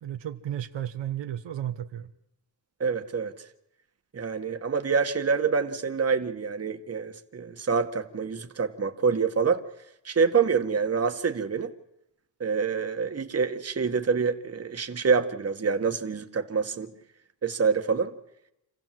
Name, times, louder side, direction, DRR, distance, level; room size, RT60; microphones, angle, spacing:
voice 1, 0.0-2.1, right 11 dB, 80° right, 1.3 m, -33 dB
voice 2, 2.8-3.3 4.1-9.6 10.0-11.7 12.4-16.9 17.4-18.1, right 5 dB, 35° right, 1.7 m, -26 dB
28.0 x 15.5 x 7.7 m
cardioid pair, 115°, 43 cm